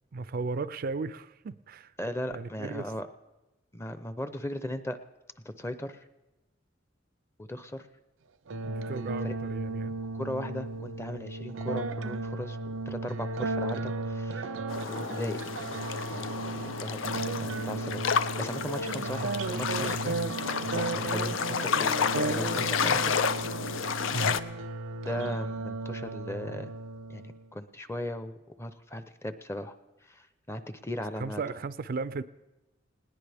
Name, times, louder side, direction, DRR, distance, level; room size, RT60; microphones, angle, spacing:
voice 1, 0.1-1.9 2.3-2.8 8.7-10.0 24.1-24.4 31.2-32.2, right 4 dB, 50° right, 14 dB, 0.4 m, -35 dB
voice 2, 2.0-3.1 3.7-5.0 5.4-6.0 7.4-7.9 9.2-9.3 10.1-12.6 12.9-14.5 14.9-15.4 16.1-20.2 20.7-23.2 25.0-26.7 27.1-29.7 30.0-31.4, left 1 dB, 15° left, 11 dB, 0.6 m, -37 dB
sound 1, 8.5-27.5, right 3 dB, 90° right, 0.6 m, -35 dB
sound 2, 14.7-24.4, left 6 dB, 85° left, 0.5 m, -31 dB
20.0 x 18.0 x 3.4 m, 1.1 s
head